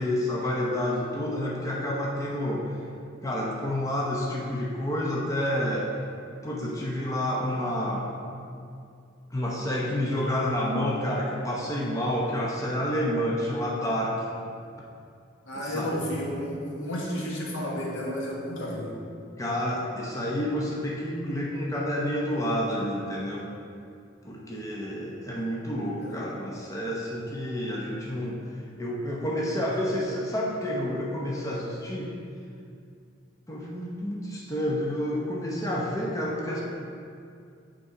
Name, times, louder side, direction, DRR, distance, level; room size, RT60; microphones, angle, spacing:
voice 1, 0.0-2.8 3.2-5.9 6.4-8.1 9.3-14.2 15.5-15.9 19.4-23.5 24.2-28.4 28.8-32.1 33.5-36.6, left 1 dB, 15° left, -4 dB, 0.7 m, -29 dB
voice 2, 15.4-19.0 26.0-26.2, equal, 75° left, -3 dB, 1.4 m, -32 dB
8.0 x 3.8 x 4.8 m, 2.4 s
head